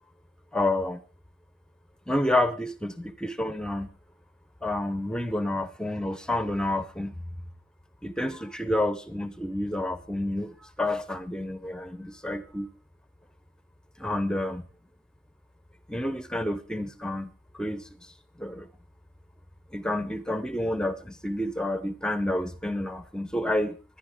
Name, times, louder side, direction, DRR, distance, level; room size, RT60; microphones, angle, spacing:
voice 1, 0.5-1.0 2.1-3.9 4.6-7.2 8.0-12.7 14.0-14.6 15.9-17.3 17.5-18.1 18.4-18.7 19.7-23.8, left 1 dB, 5° left, 12 dB, 0.7 m, -29 dB
26.0 x 10.5 x 3.6 m, 0.35 s
head